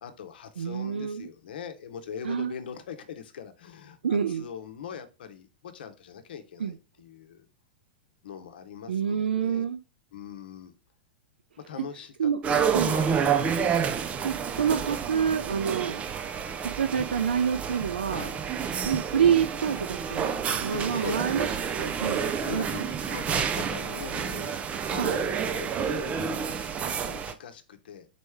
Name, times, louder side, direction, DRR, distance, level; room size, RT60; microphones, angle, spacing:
voice 1, 0.0-7.5 8.2-9.7 10.1-10.7 11.7-12.3 12.8-13.6 18.0-18.4 20.7-21.3 22.1-28.1, left 7 dB, 70° left, 8 dB, 0.8 m, -41 dB
voice 2, 0.6-1.3 2.2-2.5 4.0-4.5 6.6-6.8 8.9-9.8 12.2-12.4 12.7-13.0 14.2-16.0 16.6-18.3 18.8-21.5 21.8-22.8 24.9-25.2, right 7 dB, 85° right, 10 dB, 0.4 m, -27 dB
sound 1, 12.4-27.3, right 7 dB, 25° right, 0.5 m, -29 dB
4.1 x 3.1 x 3.5 m, 0.30 s
hypercardioid pair, 105°, 5 cm